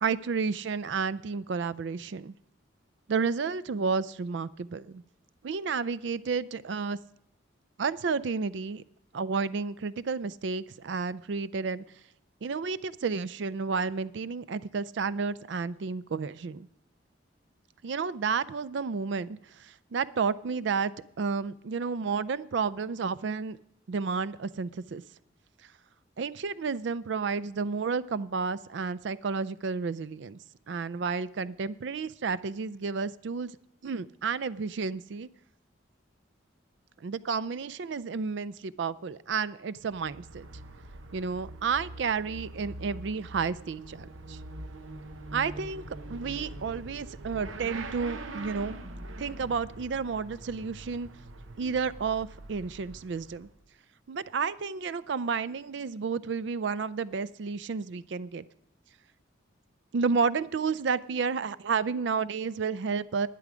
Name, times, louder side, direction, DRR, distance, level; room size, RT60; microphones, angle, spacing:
voice 1, 0.0-2.3 3.1-5.0 5.4-7.0 7.8-8.8 9.1-11.8 12.4-16.7 17.8-20.9 21.2-23.6 23.9-25.0 26.2-30.4 30.7-33.5 33.8-35.3 37.0-40.5 41.1-44.4 45.3-45.8 46.1-48.8 49.2-51.1 51.6-53.5 54.1-58.4 59.9-63.3, right 5 dB, 65° right, 18 dB, 0.4 m, -31 dB
Motorcycle / Accelerating revving vroom, 39.8-53.6, right 2 dB, 90° right, 1.0 m, -43 dB
11.5 x 10.0 x 5.0 m, 0.75 s
head